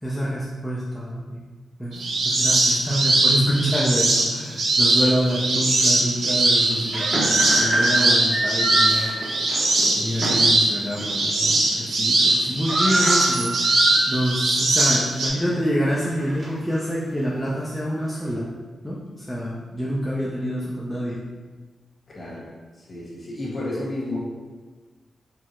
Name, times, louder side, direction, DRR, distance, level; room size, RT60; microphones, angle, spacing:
voice 1, 0.0-1.4 1.8-2.0 2.2-9.1 9.9-18.5 18.8-21.2, equal, 5° left, -7 dB, 0.5 m, -27 dB
sound 1, 1.9-15.3, right 2 dB, 80° right, 0.7 m, -21 dB
sound 2, 5.0-5.1 5.7-5.8 6.7-10.6 11.0-11.1 11.5-11.9 12.2-12.3 12.4-14.4 14.8-14.9 15.5-16.9, right 1 dB, 40° right, 0.8 m, -26 dB
voice 2, 22.1-22.5 22.7-24.2, left 1 dB, 40° left, -6 dB, 1.4 m, -31 dB
4.5 x 2.0 x 4.3 m, 1.3 s
wide cardioid pair, 140°, 0 cm